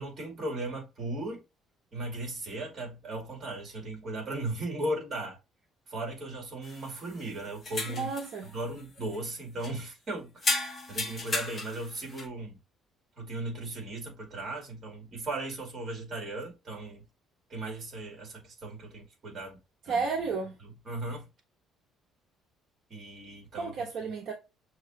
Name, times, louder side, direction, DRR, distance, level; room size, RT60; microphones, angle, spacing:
voice 1, 0.0-1.4 1.9-5.4 5.9-8.1 8.5-12.6 13.2-17.0 17.5-19.6 19.8-20.1 20.9-21.3 22.9-23.9, right 2 dB, 30° right, 2.4 m, -37 dB
sound 1, 6.6-7.3 7.6-8.4 8.8-9.3 9.6-9.7 10.4-12.3, left 2 dB, 25° left, 0.9 m, -34 dB
voice 2, 7.9-8.5 19.9-20.5 23.6-24.3, right 4 dB, 55° right, 0.9 m, -32 dB
6.2 x 3.0 x 2.6 m
cardioid pair, 170°, 0 cm